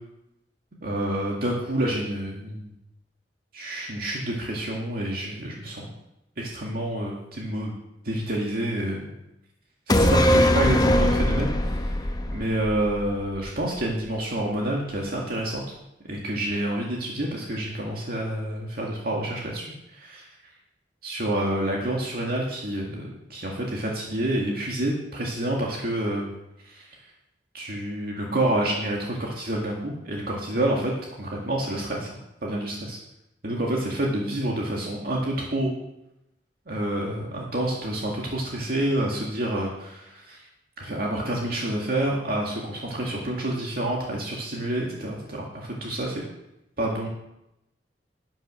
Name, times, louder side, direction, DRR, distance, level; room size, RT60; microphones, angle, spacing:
voice 1, 0.8-2.7 3.5-5.9 6.4-7.8 8.0-9.1 9.9-12.1 12.3-15.6 16.1-20.3 21.0-26.3 26.6-27.0 27.5-33.0 33.4-35.7 36.7-40.4 40.8-46.2 46.8-47.1, right 1 dB, 60° right, -2 dB, 2.1 m, -28 dB
sound 1, 9.9-13.5 13.8-13.9, equal, 25° left, 0.8 m, -21 dB
11.5 x 9.5 x 6.3 m, 0.87 s
head